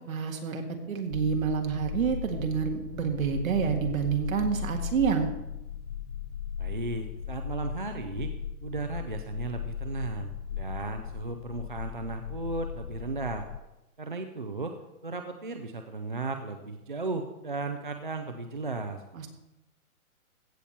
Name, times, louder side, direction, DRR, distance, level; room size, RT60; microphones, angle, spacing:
voice 1, 0.1-5.3 19.1-19.3, right 6 dB, 65° right, 4 dB, 1.9 m, -28 dB
sound 1, 1.1-13.6, left 8 dB, 85° left, 0.6 m, -37 dB
voice 2, 6.6-8.3 8.6-13.5 14.0-14.7 15.0-19.0, right 3 dB, 35° right, 5 dB, 0.4 m, -35 dB
15.5 x 6.7 x 4.3 m, 0.97 s
hypercardioid pair, 180°, 45 cm